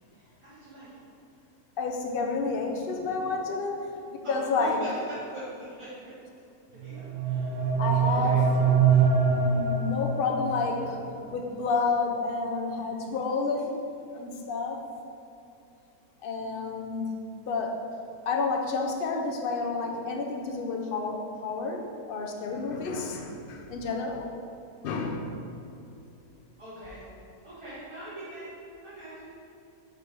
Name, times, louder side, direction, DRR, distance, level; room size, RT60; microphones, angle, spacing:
voice 1, 0.1-1.0 4.2-4.9 5.1-6.0 6.8-7.6 8.0-8.4 26.6-27.0 27.4-28.5 28.8-29.5, right 1 dB, 20° right, -12 dB, 1.1 m, -42 dB
voice 2, 1.8-4.8 6.9-7.0 7.8-8.4 9.3-13.7 14.1-14.8 16.2-17.0 17.5-17.8 18.3-21.8 22.1-24.3 24.8-25.3, left 4 dB, 70° left, 1 dB, 0.5 m, -30 dB
sound 1, 6.8-10.8, right 6 dB, 90° right, 1.2 m, -24 dB
5.2 x 4.8 x 4.5 m, 2.6 s
omnidirectional pair, 1.6 m